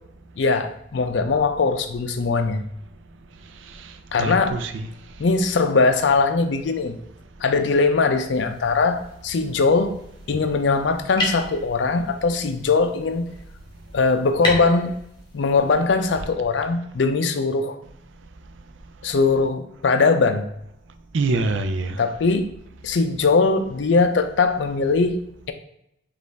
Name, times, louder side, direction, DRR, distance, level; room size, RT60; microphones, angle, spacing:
voice 1, 0.4-2.6 4.1-4.6 5.2-7.0 7.4-10.0 10.3-13.3 13.9-15.0 15.3-17.8 19.0-20.5 22.0-22.5 22.8-25.5, left 4 dB, 70° left, 0.4 m, -21 dB
voice 2, 3.6-4.9 21.1-22.1, right 3 dB, 80° right, 0.4 m, -26 dB
sound 1, 8.2-16.2, left 1 dB, 25° left, 1.0 m, -35 dB
5.2 x 2.5 x 3.3 m
head